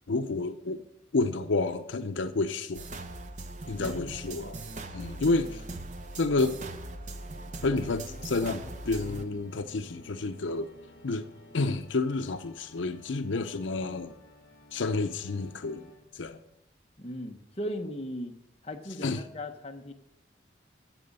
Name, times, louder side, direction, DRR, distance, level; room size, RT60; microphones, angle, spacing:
voice 1, 0.1-0.8 1.1-2.8 3.7-4.6 4.9-5.6 6.2-6.6 7.6-10.7 11.0-11.3 11.5-14.1 14.7-15.9 16.1-16.4 19.0-19.2, left 3 dB, 80° left, 0.6 m, -30 dB
sound 1, 2.7-9.3, right 2 dB, 40° right, 0.8 m, -40 dB
voice 2, 3.8-4.2 17.0-18.4 18.6-19.9, equal, 30° left, 1.0 m, -37 dB
Organ, 4.5-16.4, left 1 dB, 55° left, 2.5 m, -56 dB
14.5 x 7.6 x 5.4 m
head